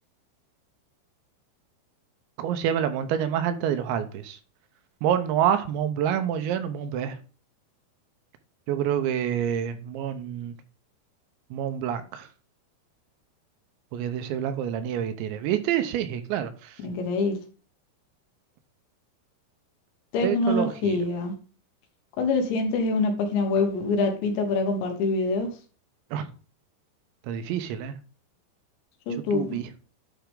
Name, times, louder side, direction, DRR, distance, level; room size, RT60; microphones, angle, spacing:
voice 1, 2.4-4.4 5.0-7.2 8.7-10.5 11.5-12.3 13.9-16.8 20.2-21.0 26.1-26.3 27.3-27.9 29.3-29.7, right 9 dB, 85° right, 2.8 m, -27 dB
voice 2, 16.8-17.4 20.1-21.3 22.2-25.5 29.1-29.6, left 3 dB, 75° left, 3.6 m, -25 dB
10.0 x 5.8 x 3.7 m
omnidirectional pair, 5.4 m